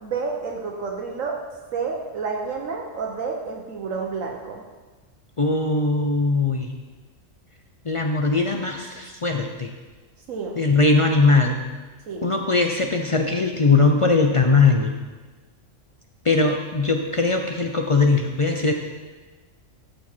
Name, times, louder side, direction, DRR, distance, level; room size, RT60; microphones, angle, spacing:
voice 1, 0.0-1.4 1.7-4.6 10.3-10.6 12.1-12.3, right 5 dB, 80° right, 0 dB, 1.3 m, -29 dB
voice 2, 5.4-6.7 7.8-9.7 10.6-11.6 12.2-14.9 16.2-18.7, left 3 dB, 40° left, 3 dB, 0.4 m, -20 dB
13.0 x 6.2 x 4.4 m, 1.3 s
omnidirectional pair, 1.3 m